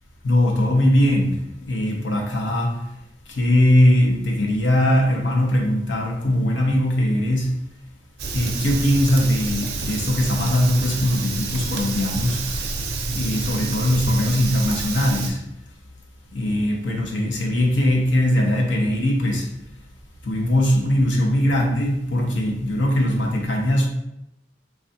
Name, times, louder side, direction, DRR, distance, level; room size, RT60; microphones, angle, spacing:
voice 1, 0.2-1.4 1.7-2.8 3.3-7.6 8.3-12.5 13.1-15.4 16.3-19.5 20.2-23.9, left 1 dB, 70° left, 1 dB, 0.6 m, -20 dB
Fire, 8.2-15.3, right 3 dB, 55° right, 0.4 m, -28 dB
3.2 x 2.4 x 2.6 m, 0.87 s
head